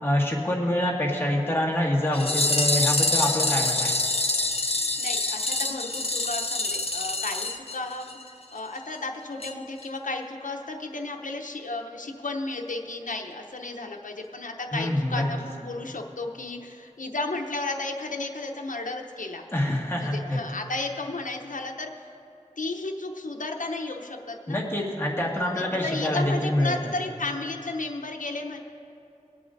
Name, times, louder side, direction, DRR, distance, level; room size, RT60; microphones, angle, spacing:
voice 1, 0.0-4.0 14.7-15.2 19.5-20.4 24.5-26.9, left 1 dB, 20° left, -3 dB, 1.9 m, -26 dB
sound 1, 2.1-8.3 8.6-8.7 8.9-9.0 9.4-9.5 9.8-9.9, left 2 dB, 50° left, 0.8 m, -26 dB
voice 2, 5.0-8.2 8.5-19.4 20.0-22.2 22.6-24.6 25.4-28.6, left 2 dB, 80° left, 2 dB, 0.8 m, -33 dB
22.0 x 8.4 x 2.6 m, 2.8 s
wide cardioid pair, 55°, 13 cm